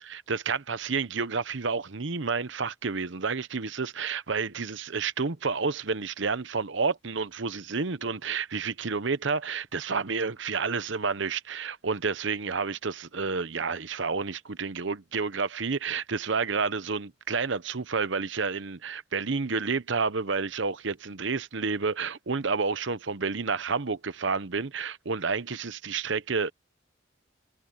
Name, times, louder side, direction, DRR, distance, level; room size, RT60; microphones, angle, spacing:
voice 1, 0.3-26.5, right 4 dB, 70° right, 0.9 m, -30 dB
head